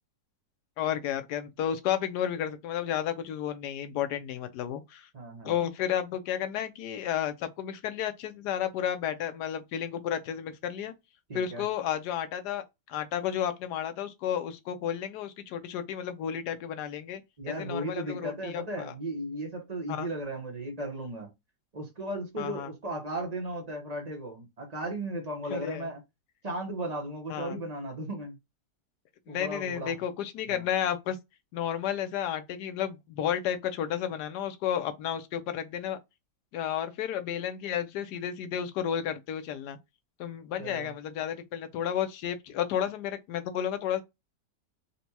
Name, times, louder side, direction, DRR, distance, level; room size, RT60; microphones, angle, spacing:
voice 1, 0.8-5.1 5.4-10.9 11.3-17.2 17.5-18.9 19.9-20.1 22.4-22.7 25.5-25.9 27.3-27.6 29.3-31.2 31.5-36.0 36.5-39.8 40.2-44.0, left 9 dB, 85° left, 1.2 m, -32 dB
voice 2, 5.1-5.5 11.3-11.6 17.4-21.3 21.7-26.0 26.4-28.4 29.3-29.9 30.5-30.7 40.6-40.9, right 1 dB, 35° right, 0.6 m, -36 dB
4.1 x 2.2 x 2.7 m
omnidirectional pair, 1.8 m